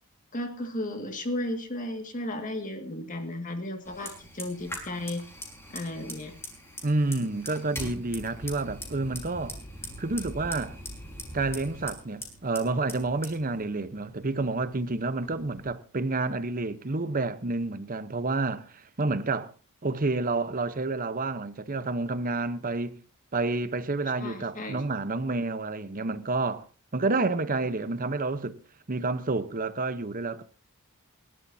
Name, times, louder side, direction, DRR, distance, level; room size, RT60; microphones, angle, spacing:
voice 1, 0.3-5.3 5.7-6.3 24.2-24.8, left 1 dB, 35° left, 2.0 m, -34 dB
Fire, 3.8-15.7, left 1 dB, 10° left, 4.7 m, -42 dB
voice 2, 6.8-9.6 10.0-10.8 11.3-19.5 19.8-23.0 23.3-26.7 26.9-28.6 28.9-30.4, right 3 dB, 40° right, 0.9 m, -29 dB
28.0 x 12.5 x 2.8 m
head